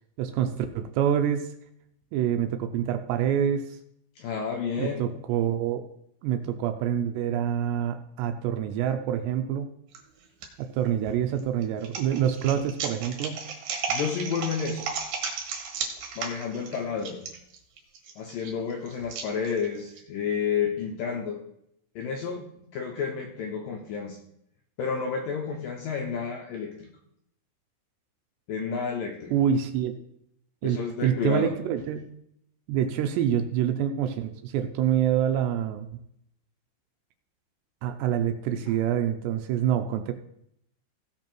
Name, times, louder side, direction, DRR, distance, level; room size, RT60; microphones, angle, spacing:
voice 1, 0.2-1.5 2.1-3.8 4.8-5.8 6.2-9.7 10.6-13.5 29.3-29.9 30.6-32.1 32.7-35.9 37.8-40.1, right 9 dB, 80° right, 6 dB, 2.7 m, -26 dB
voice 2, 4.2-5.0 13.9-14.9 16.2-17.2 18.2-21.4 22.0-22.4 22.7-24.2 24.8-26.9 28.5-29.3 30.6-31.5 38.7-38.8, left 6 dB, 75° left, 1 dB, 2.1 m, -30 dB
sound 1, 9.9-10.5 11.0-20.0, right 5 dB, 60° right, 2.8 m, -35 dB
16.5 x 5.8 x 4.5 m, 0.74 s
omnidirectional pair, 5.3 m